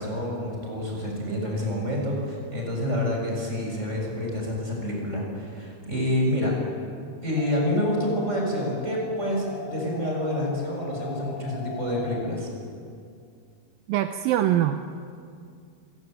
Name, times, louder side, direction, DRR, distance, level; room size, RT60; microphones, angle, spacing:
voice 1, 0.0-6.5 7.2-12.5, left 1 dB, 15° right, -1 dB, 7.0 m, -28 dB
sound 1, 7.4-12.4, left 7 dB, 65° left, 2.7 m, -39 dB
voice 2, 13.9-14.8, right 12 dB, 80° right, 7 dB, 2.2 m, -23 dB
29.5 x 17.0 x 9.0 m, 2.3 s
omnidirectional pair, 4.8 m